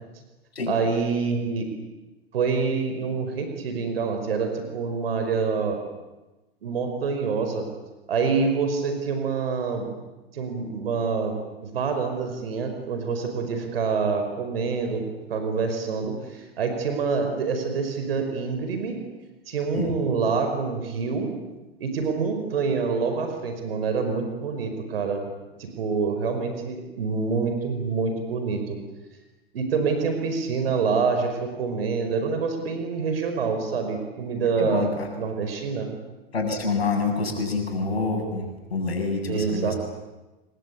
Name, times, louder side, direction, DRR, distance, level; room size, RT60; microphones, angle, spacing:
voice 1, 0.7-1.7 2.3-5.8 6.6-7.7 8.1-9.9 10.3-11.3 11.6-15.0 15.3-19.0 19.5-21.3 21.8-25.2 25.6-28.8 29.5-35.9 39.3-39.7, right 5 dB, 70° right, 6 dB, 5.4 m, -26 dB
voice 2, 34.6-35.1 36.3-39.7, left 4 dB, 85° left, 2 dB, 7.5 m, -27 dB
28.5 x 21.5 x 8.5 m, 1.1 s
hypercardioid pair, 105°, 30 cm